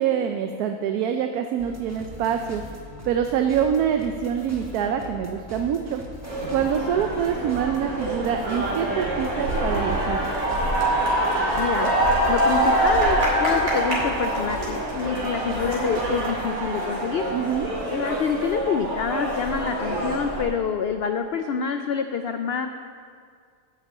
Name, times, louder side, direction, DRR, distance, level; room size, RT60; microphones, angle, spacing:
voice 1, 0.0-2.6 3.1-6.0 6.5-10.2 17.3-17.7, right 8 dB, 85° right, 6 dB, 1.1 m, -25 dB
sound 1, 1.6-16.5, left 1 dB, 10° right, 1.1 m, -41 dB
sound 2, 6.2-20.4, right 1 dB, 65° right, 3.0 m, -25 dB
voice 2, 11.6-11.9 12.3-17.3 17.9-22.7, left 6 dB, 75° left, 7 dB, 0.5 m, -27 dB
9.7 x 6.0 x 8.2 m, 2.1 s
omnidirectional pair, 1.6 m